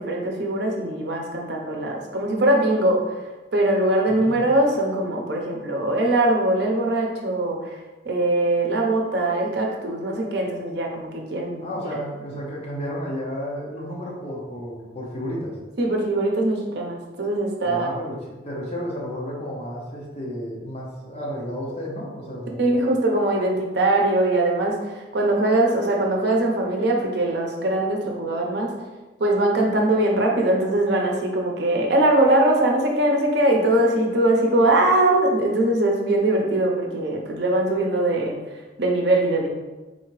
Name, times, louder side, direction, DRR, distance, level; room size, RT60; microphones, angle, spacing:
voice 1, 0.0-3.0 3.5-7.8 8.0-11.7 15.8-17.9 22.6-28.7 29.2-38.4 38.8-39.5, right 1 dB, 65° right, 0 dB, 0.7 m, -21 dB
voice 2, 11.6-15.6 17.6-22.6, equal, 35° left, -4 dB, 1.0 m, -32 dB
4.0 x 2.8 x 3.1 m, 1.2 s
head